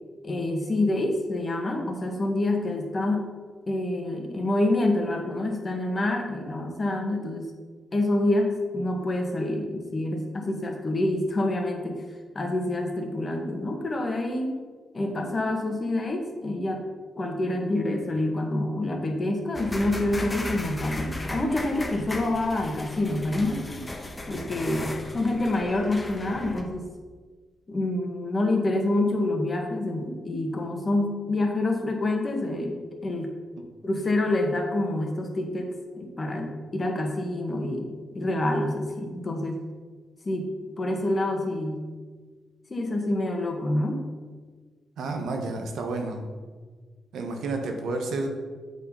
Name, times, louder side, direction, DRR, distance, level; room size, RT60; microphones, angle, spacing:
voice 1, 0.2-3.3 3.7-7.5 7.9-12.0 12.3-14.6 14.9-16.8 17.2-23.8 24.3-26.9 27.7-33.3 33.8-39.6 40.3-40.5 40.8-41.9 42.7-44.0 45.1-45.2, left 1 dB, 40° left, 3 dB, 1.7 m, -27 dB
sound 1, 19.5-26.6, left 1 dB, 20° left, 1.4 m, -36 dB
voice 2, 45.0-46.2 47.1-48.4, right 3 dB, 80° right, 3 dB, 1.2 m, -30 dB
8.0 x 4.8 x 5.7 m, 1.5 s
supercardioid pair, 55°, 0 cm